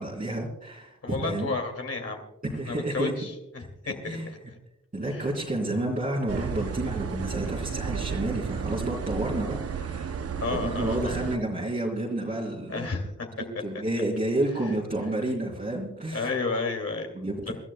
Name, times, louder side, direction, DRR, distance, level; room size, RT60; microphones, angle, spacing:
voice 1, 0.0-1.5 2.4-3.1 3.8-4.3 4.9-10.2 10.5-12.9 13.4-16.3 17.1-17.5, right 1 dB, 30° right, -5 dB, 3.2 m, -30 dB
voice 2, 1.0-2.2 2.6-4.5 5.1-5.3 10.4-11.2 12.7-13.3 16.1-17.1 17.5-17.6, left 3 dB, 55° left, 2 dB, 2.4 m, -32 dB
sound 1, 6.3-11.4, right 7 dB, 55° right, 0.7 m, -33 dB
28.0 x 13.5 x 2.2 m, 0.86 s
wide cardioid pair, 125°, 29 cm